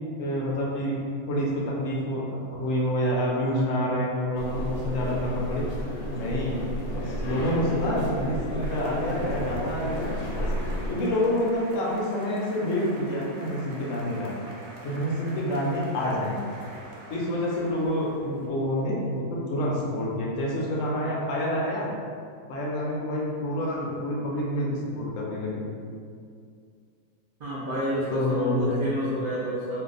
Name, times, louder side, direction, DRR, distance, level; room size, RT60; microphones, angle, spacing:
voice 1, 0.2-1.0 1.3-5.6 6.1-6.6 6.9-10.5 10.9-14.3 14.8-16.4 17.1-19.0 19.3-21.9 22.5-25.7 28.1-28.8, equal, 70° left, -4 dB, 0.9 m, -28 dB
sound 1, 4.4-10.9, equal, 90° left, 1.1 m, -32 dB
sound 2, 8.6-18.5, right 1 dB, 90° right, 1.1 m, -45 dB
voice 2, 27.4-29.8, equal, 70° right, -8 dB, 0.5 m, -29 dB
2.6 x 2.3 x 3.8 m, 2.3 s
omnidirectional pair, 1.6 m